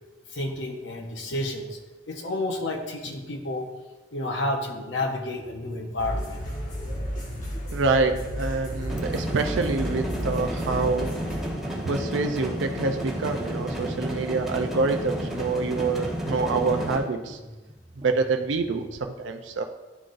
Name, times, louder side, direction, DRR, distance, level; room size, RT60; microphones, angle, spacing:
voice 1, 0.3-1.8 2.1-3.7 4.1-6.4, left 1 dB, 70° left, 2 dB, 0.7 m, -30 dB
sound 1, 5.0-19.0, equal, 30° right, 0.8 m, -46 dB
sound 2, 6.0-11.5, equal, 45° left, 1.1 m, -33 dB
voice 2, 7.7-11.1 11.8-17.4 18.0-19.6, right 3 dB, 85° right, 5 dB, 0.4 m, -26 dB
sound 3, 8.9-17.0, right 1 dB, ahead, 1.2 m, -32 dB
11.0 x 3.8 x 2.5 m, 1.2 s
head